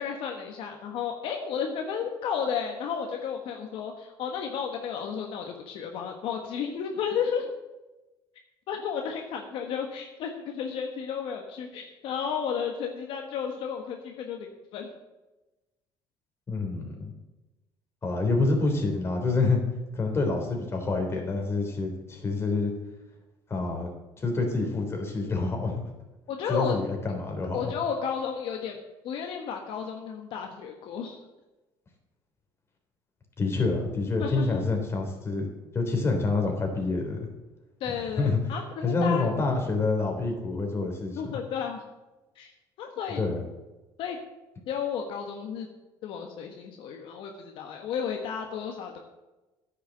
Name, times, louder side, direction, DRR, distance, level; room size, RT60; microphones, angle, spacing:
voice 1, 0.0-7.5 8.7-14.5 14.7-14.9 26.3-26.7 27.5-28.8 29.0-31.2 34.2-34.6 37.8-39.3 41.2-41.8 42.4-42.5 42.8-43.2 44.0-44.2 44.7-45.7 46.0-49.0, left 7 dB, 70° left, 3 dB, 1.3 m, -33 dB
voice 2, 16.5-17.1 18.0-19.6 19.9-22.7 23.5-23.9 24.2-25.8 26.5-27.7 33.4-37.3 37.9-38.4 38.8-41.2 43.2-43.4, left 3 dB, 30° left, 2 dB, 3.3 m, -27 dB
9.9 x 6.8 x 7.7 m, 1.1 s
cardioid pair, 105°, 9 cm